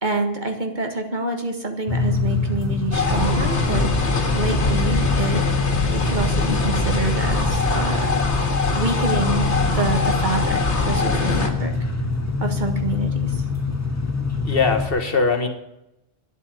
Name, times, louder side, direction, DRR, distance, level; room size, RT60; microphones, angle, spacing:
voice 1, 0.0-5.5 5.9-8.2 8.7-11.7 12.4-13.4, right 2 dB, 45° right, 4 dB, 1.7 m, -27 dB
sound 1, 1.9-14.9, left 4 dB, 15° left, 1.4 m, -25 dB
sound 2, 2.9-11.5, left 2 dB, 85° left, 1.9 m, -23 dB
voice 2, 4.0-4.4 14.4-15.5, left 4 dB, 60° left, 6 dB, 1.6 m, -22 dB
10.5 x 8.2 x 9.5 m, 0.87 s
omnidirectional pair, 1.1 m